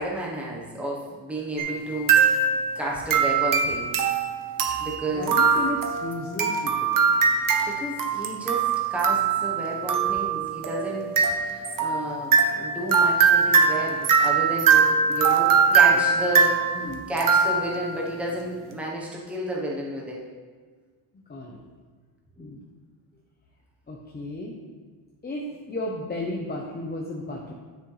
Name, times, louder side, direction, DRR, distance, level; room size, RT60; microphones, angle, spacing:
voice 1, 0.0-2.5 2.7-4.0 4.8-5.4 7.7-16.8 17.1-20.2 22.4-22.5, right 1 dB, ahead, -3 dB, 1.1 m, -31 dB
sound 1, 1.6-2.7 3.1-18.0, right 5 dB, 40° right, 0.9 m, -22 dB
voice 2, 5.1-7.2 15.7-16.0 16.7-17.1 21.1-21.6 22.4-22.6 23.9-24.6 25.2-27.5, left 1 dB, 20° left, -2 dB, 0.9 m, -34 dB
10.5 x 6.1 x 3.4 m, 1.5 s
cardioid pair, 135°, 49 cm